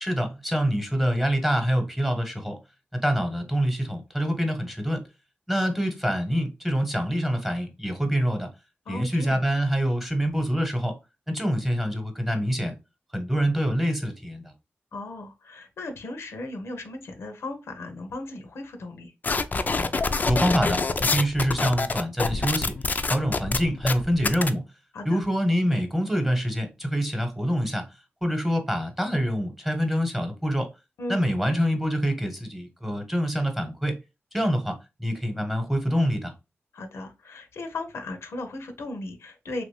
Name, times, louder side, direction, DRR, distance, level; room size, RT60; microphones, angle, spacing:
voice 1, 0.0-2.6 2.9-5.0 5.5-8.5 8.9-11.0 11.3-12.7 13.1-14.5 20.2-22.7 23.1-24.6 25.0-27.8 28.2-30.7 31.1-34.0 34.3-36.3, equal, 5° right, 1.0 m, -25 dB
voice 2, 8.9-9.4 14.9-19.1 24.9-25.2 31.0-31.2 36.7-39.6, left 2 dB, 90° left, 0.7 m, -36 dB
sound 1, 19.2-24.5, left 3 dB, 40° left, 0.4 m, -26 dB
3.0 x 2.6 x 3.2 m
cardioid pair, 65°, 4 cm